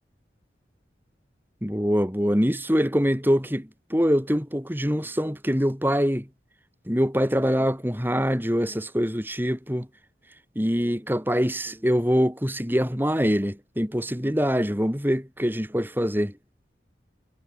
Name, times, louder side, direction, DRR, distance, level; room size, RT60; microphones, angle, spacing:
voice 1, 1.6-6.3 6.9-9.9 10.5-16.3, equal, 10° right, 6.8 m, -24 dB
head